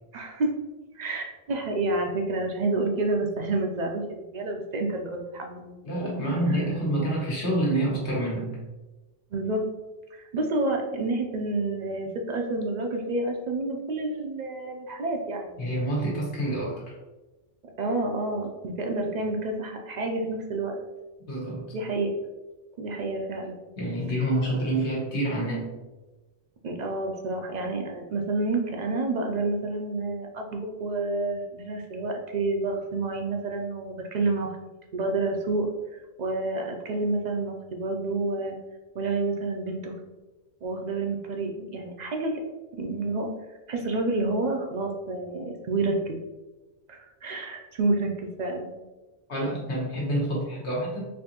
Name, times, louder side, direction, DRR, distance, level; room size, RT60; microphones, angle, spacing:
voice 1, 0.1-0.5 0.9-5.9 9.3-9.6 10.1-15.6 17.8-20.8 21.7-22.1 22.8-23.6 24.2-24.3 26.6-34.6 34.9-35.7 35.9-38.6 38.9-39.9 40.6-42.4 42.8-43.3 43.7-46.2 46.9-48.7, right 2 dB, 60° right, 2 dB, 0.5 m, -29 dB
voice 2, 5.8-8.6 15.6-16.9 21.3-21.7 23.8-25.7 49.3-51.0, right 1 dB, 70° left, -4 dB, 1.4 m, -27 dB
4.2 x 2.6 x 2.9 m, 1.1 s
omnidirectional pair, 1.2 m